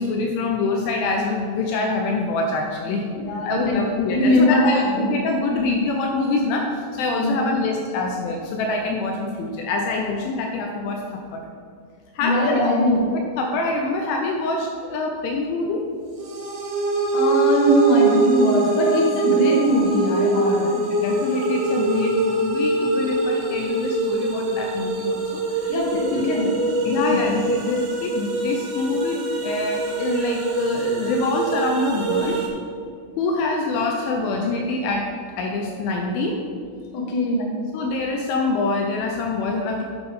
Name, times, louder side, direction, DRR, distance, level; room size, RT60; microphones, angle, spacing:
voice 1, 0.0-3.0 3.4-11.0 11.3-11.4 12.1-12.7 13.4-15.9 20.7-25.7 26.8-32.4 33.2-35.1 35.4-36.4 37.4-37.5 37.7-39.8, left 3 dB, 80° left, 1 dB, 2.9 m, -25 dB
voice 2, 3.1-3.8 4.1-5.1 7.2-7.4 12.2-13.0 17.1-20.7 25.7-26.5 27.1-27.2 36.9-37.6, equal, 60° left, -3 dB, 2.1 m, -21 dB
sound 1, 16.2-32.5, right 3 dB, 90° right, 3.9 m, -23 dB
9.5 x 8.1 x 3.7 m, 2.2 s
omnidirectional pair, 5.8 m